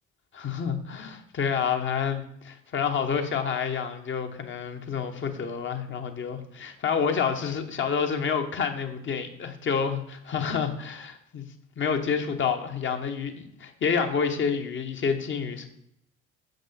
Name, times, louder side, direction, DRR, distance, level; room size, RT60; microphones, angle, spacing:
voice 1, 0.3-11.4 11.8-15.7, left 6 dB, 35° left, 6 dB, 1.1 m, -28 dB
6.5 x 6.5 x 4.1 m, 0.76 s
figure-of-eight pair, 55°, 35 cm